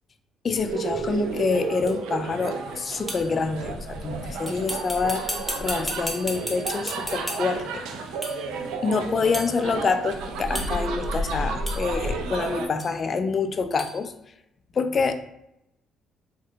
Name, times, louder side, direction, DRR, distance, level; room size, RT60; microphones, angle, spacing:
voice 1, 0.4-7.9 8.8-14.1 14.8-15.1, left 4 dB, 40° left, 8 dB, 0.3 m, -26 dB
sound 1, 0.5-12.7, right 3 dB, 90° right, 0.3 m, -32 dB
sound 2, 1.9-2.0 3.1-3.4 4.5-7.6 8.2-8.5 9.3-9.6 10.5-11.0 11.7-11.9 12.8-12.9 13.8-14.0, equal, 5° right, 0.7 m, -34 dB
3.6 x 2.2 x 2.7 m, 0.84 s
cardioid pair, 95°, 0 cm